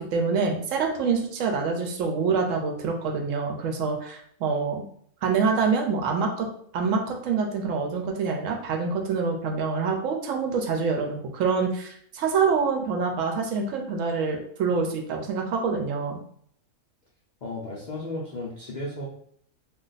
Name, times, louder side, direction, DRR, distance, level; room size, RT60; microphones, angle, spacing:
voice 1, 0.0-4.8 5.2-6.5 6.7-16.2, right 5 dB, 70° right, 3 dB, 0.9 m, -26 dB
voice 2, 17.4-19.0, left 2 dB, 75° left, -4 dB, 0.4 m, -34 dB
2.4 x 2.2 x 3.9 m, 0.64 s
omnidirectional pair, 1.5 m